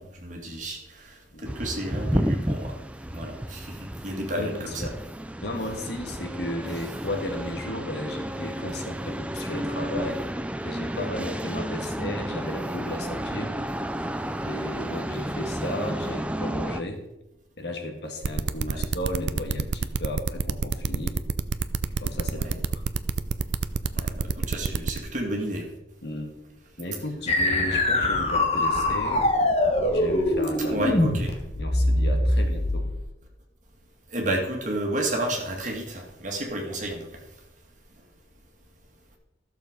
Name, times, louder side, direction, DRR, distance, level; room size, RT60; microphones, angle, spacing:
voice 1, 0.0-2.7 3.1-4.7 18.7-18.9 22.3-22.6 24.0-25.6 27.6-27.7 30.7-31.3 34.1-37.1, right 1 dB, 40° right, 1 dB, 2.2 m, -31 dB
sound 1, 1.4-16.8, right 1 dB, 5° right, 0.4 m, -32 dB
voice 2, 4.3-5.0 5.4-10.2 10.7-13.6 14.4-17.0 17.6-21.2 21.8-22.8 26.0-26.3 26.8-29.3 29.9-30.8 31.0-31.2 31.6-32.9, left 1 dB, 60° left, 3 dB, 1.7 m, -34 dB
sound 2, 18.2-25.0, right 4 dB, 60° right, 0.5 m, -27 dB
sound 3, 27.3-33.0, left 1 dB, 35° left, 1.3 m, -23 dB
13.5 x 6.9 x 5.2 m, 0.92 s
head